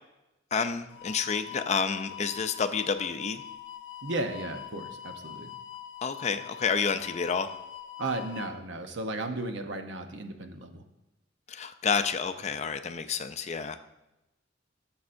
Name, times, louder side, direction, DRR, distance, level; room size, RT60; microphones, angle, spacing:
voice 1, 0.5-3.4 6.0-7.5 11.5-13.9, left 6 dB, 35° left, 9 dB, 0.4 m, -29 dB
sound 1, 0.9-8.5, left 11 dB, 80° left, 0.6 m, -43 dB
voice 2, 4.0-5.5 8.0-10.8, right 2 dB, 70° right, 6 dB, 0.8 m, -34 dB
14.0 x 7.2 x 2.6 m, 0.95 s
head